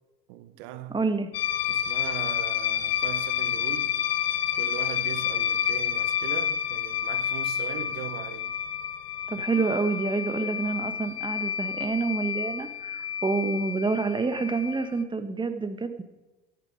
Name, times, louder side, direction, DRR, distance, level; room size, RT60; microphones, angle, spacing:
voice 1, 0.3-1.0 1.7-4.0 4.5-8.5, right 12 dB, 60° right, 1.2 m, -39 dB
voice 2, 0.9-1.3 9.3-16.0, right 4 dB, 15° right, 1.4 m, -28 dB
sound 1, 1.3-15.0, left 9 dB, 70° left, 0.9 m, -29 dB
16.0 x 10.5 x 5.1 m
hypercardioid pair, 75°, 31 cm